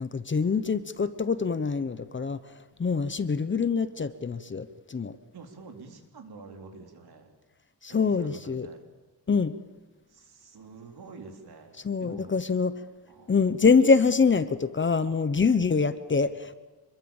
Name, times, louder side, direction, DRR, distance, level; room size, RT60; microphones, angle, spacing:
voice 1, 0.0-2.4 2.8-5.2 7.8-8.7 9.3-9.5 11.8-12.7 13.3-16.5, left 5 dB, 30° left, 12 dB, 1.0 m, -25 dB
voice 2, 5.3-7.3 7.8-8.8 10.1-12.3 13.1-13.3, right 4 dB, 65° right, 4 dB, 4.2 m, -47 dB
27.0 x 22.5 x 7.3 m, 1.2 s
wide cardioid pair, 145°, 41 cm